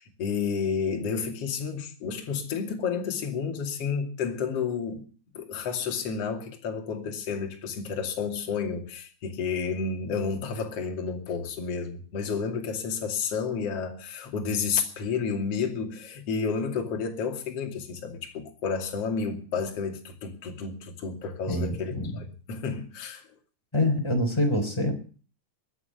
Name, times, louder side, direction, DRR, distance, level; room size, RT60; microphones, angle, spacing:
voice 1, 0.0-5.1 5.3-23.3, left 5 dB, 40° left, 2.6 m, -31 dB
voice 2, 21.5-22.2 23.7-24.9, left 1 dB, 5° left, 2.7 m, -25 dB
21.5 x 8.3 x 8.0 m
omnidirectional pair, 5.9 m